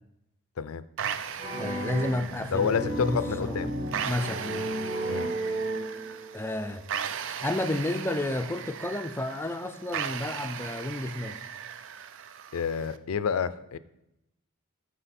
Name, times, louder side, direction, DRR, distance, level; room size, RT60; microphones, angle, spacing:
sound 1, 1.0-13.0, right 8 dB, 60° right, 0.4 m, -38 dB
sound 2, 1.4-6.3, right 1 dB, 40° right, 3.3 m, -33 dB
voice 1, 1.6-3.7 4.0-4.6 6.3-6.8 7.4-11.4, left 1 dB, 10° left, 9 dB, 0.4 m, -31 dB
voice 2, 2.5-3.7 5.1-5.3 12.5-13.8, left 6 dB, 80° left, 15 dB, 0.4 m, -29 dB
13.0 x 4.9 x 4.2 m, 0.87 s
head